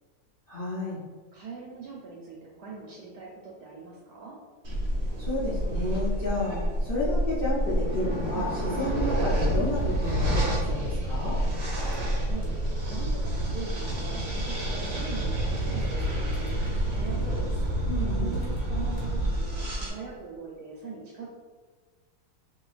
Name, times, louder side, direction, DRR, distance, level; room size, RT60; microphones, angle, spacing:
voice 1, 0.5-1.0 5.2-11.4 17.9-18.3, left 2 dB, 55° left, -9 dB, 0.6 m, -31 dB
voice 2, 1.3-4.4 12.1-12.5 12.8-17.2 17.7-21.3, right 4 dB, 75° right, -3 dB, 1.1 m, -42 dB
sound 1, 4.6-19.9, right 1 dB, 50° right, 0.8 m, -28 dB
sound 2, 8.2-8.3 8.8-10.9 11.6-12.6 13.3-14.7 15.0-15.1 15.8-17.6 18.3-19.0, left 2 dB, 85° left, 1.4 m, -42 dB
3.7 x 2.6 x 2.4 m, 1.5 s
omnidirectional pair, 1.9 m